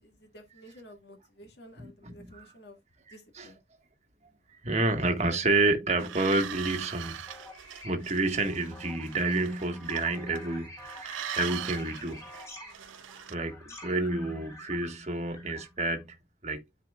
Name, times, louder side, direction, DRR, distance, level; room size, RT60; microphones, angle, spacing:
voice 1, 0.0-2.8 3.1-3.6 13.6-14.1, equal, 60° left, 1.9 m, -52 dB
voice 2, 1.8-2.4 3.1-3.5 4.5-7.2 7.8-12.2 13.3-16.2 16.4-16.6, right 2 dB, 35° right, 1.3 m, -29 dB
sound 1, 6.0-10.5 10.8-13.3, right 10 dB, 85° right, 0.4 m, -41 dB
sound 2, 7.0-15.7, equal, 15° left, 2.9 m, -48 dB
12.5 x 4.7 x 2.3 m
head